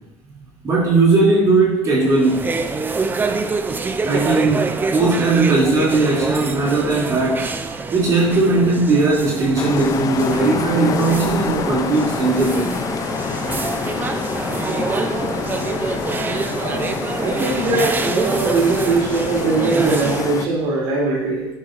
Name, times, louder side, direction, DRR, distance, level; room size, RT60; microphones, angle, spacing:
voice 1, 0.6-2.5 4.0-7.5 7.9-12.7, right 3 dB, 35° right, -5 dB, 2.9 m, -18 dB
sound 1, 2.0-20.5, right 4 dB, 20° right, 0.6 m, -26 dB
sound 2, 9.6-20.5, left 8 dB, 40° left, 0.5 m, -27 dB
voice 2, 15.1-15.5 16.5-21.5, right 3 dB, 70° right, -6 dB, 3.1 m, -21 dB
10.5 x 9.8 x 2.6 m, 1.0 s
cardioid pair, 120°, 9 cm